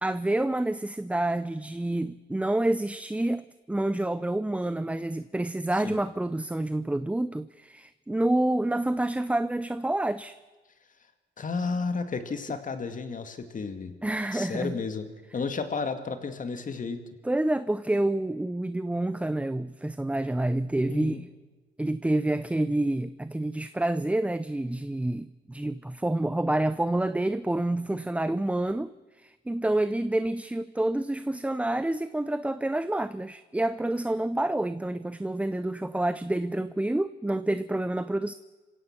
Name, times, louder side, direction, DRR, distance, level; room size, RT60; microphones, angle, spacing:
voice 1, 0.0-10.4 14.0-14.8 17.2-21.3 21.8-38.3, right 1 dB, 5° right, 14 dB, 0.5 m, -28 dB
voice 2, 11.4-13.9 14.3-15.1 15.3-17.0 20.9-21.2, left 4 dB, 40° left, 8 dB, 2.2 m, -32 dB
27.0 x 16.5 x 6.0 m, 1.3 s
cardioid pair, 90°, 20 cm